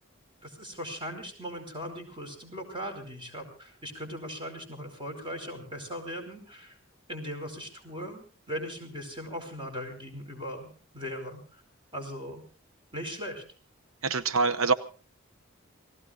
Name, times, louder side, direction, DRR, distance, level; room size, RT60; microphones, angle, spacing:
voice 1, 0.4-6.8 7.1-11.6 11.9-12.4 12.9-13.4, equal, 25° right, 5 dB, 4.9 m, -39 dB
voice 2, 14.0-14.7, right 4 dB, 80° right, 12 dB, 0.9 m, -24 dB
29.0 x 19.0 x 2.5 m, 0.37 s
head